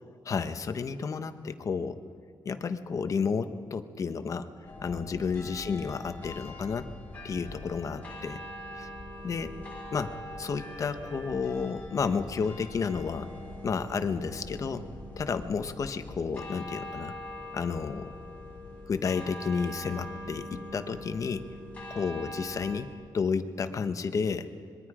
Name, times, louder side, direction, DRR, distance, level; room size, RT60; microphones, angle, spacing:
voice 1, 0.2-2.0 2.4-4.5 4.8-6.9 7.2-8.4 8.7-8.9 9.2-9.5 9.9-13.3 13.6-14.8 15.2-17.1 17.5-18.1 18.9-21.5 21.9-24.5, left 5 dB, 40° left, 9 dB, 1.0 m, -31 dB
sound 1, 4.6-22.8, left 1 dB, 20° left, 5.0 m, -42 dB
25.5 x 22.0 x 5.0 m, 2.1 s
wide cardioid pair, 155°, 8 cm